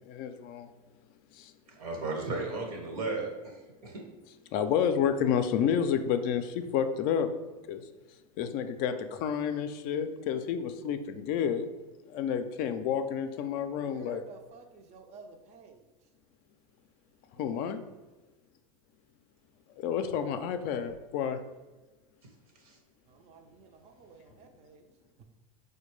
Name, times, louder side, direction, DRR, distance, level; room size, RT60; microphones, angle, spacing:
voice 1, 0.1-0.7 1.3-1.5 4.5-7.3 7.7-7.8 8.4-11.7 12.1-14.2 17.4-17.8 19.8-21.4, left 8 dB, 50° left, 0.4 m, -30 dB
voice 2, 1.8-3.6 3.8-4.0 22.6-22.8, right 3 dB, 75° right, 1.1 m, -34 dB
voice 3, 13.8-15.8 17.3-17.6 20.6-20.7 23.1-24.9 25.2-25.3, right 4 dB, 35° right, 0.4 m, -51 dB
4.3 x 2.2 x 3.1 m
hypercardioid pair, 95°, 20 cm